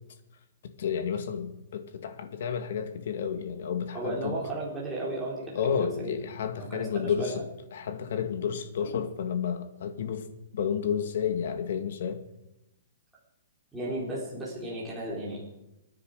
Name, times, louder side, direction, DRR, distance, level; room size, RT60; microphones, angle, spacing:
voice 1, 0.8-4.4 5.5-7.4 7.7-10.3 10.5-12.2, left 7 dB, 55° left, 1.9 m, -31 dB
voice 2, 3.9-6.1 6.5-7.4 13.7-15.4, right 1 dB, 5° right, 3.9 m, -34 dB
27.5 x 9.9 x 5.0 m
hypercardioid pair, 175°, 0 cm